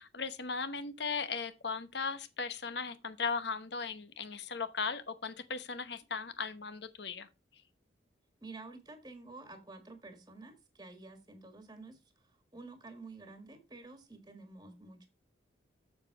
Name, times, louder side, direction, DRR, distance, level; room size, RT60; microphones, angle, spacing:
voice 1, 0.0-7.3, left 5 dB, 65° left, 1.0 m, -37 dB
voice 2, 8.4-15.1, right 3 dB, 20° right, 1.6 m, -50 dB
7.2 x 7.1 x 4.8 m
head